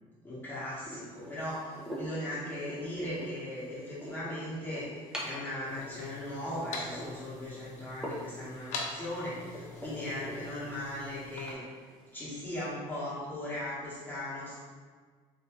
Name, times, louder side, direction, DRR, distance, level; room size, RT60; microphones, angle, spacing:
voice 1, 0.2-11.6 12.1-14.6, left 1 dB, 15° left, -10 dB, 1.2 m, -38 dB
sound 1, 0.8-12.7, equal, 5° right, 0.6 m, -45 dB
sound 2, 5.6-11.5, left 3 dB, 60° left, 0.6 m, -44 dB
3.6 x 2.7 x 3.0 m, 1.5 s
cardioid pair, 115°, 14 cm